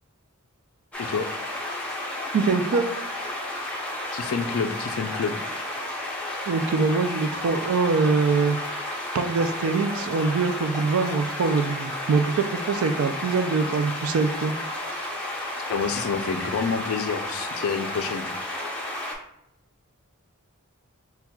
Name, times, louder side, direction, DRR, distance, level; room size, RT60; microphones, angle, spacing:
sound 1, 0.9-19.1, left 1 dB, 5° left, 0.5 m, -32 dB
voice 1, 1.0-1.3 4.1-5.4 15.7-18.3, left 5 dB, 65° left, 8 dB, 0.4 m, -28 dB
voice 2, 2.3-2.8 6.5-8.6 9.1-14.5, right 4 dB, 65° right, 8 dB, 0.3 m, -23 dB
5.7 x 2.2 x 2.2 m, 0.81 s
head